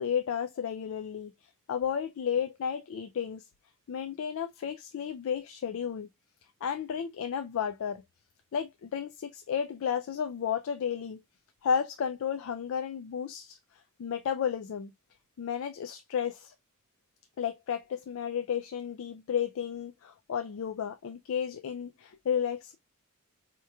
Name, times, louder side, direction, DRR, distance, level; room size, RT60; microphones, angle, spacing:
voice 1, 0.0-3.4 3.9-6.1 6.6-8.0 8.5-11.2 11.6-13.6 14.0-14.9 15.4-16.5 17.4-22.7, left 7 dB, 65° left, 0.3 m, -32 dB
4.6 x 2.9 x 2.2 m
head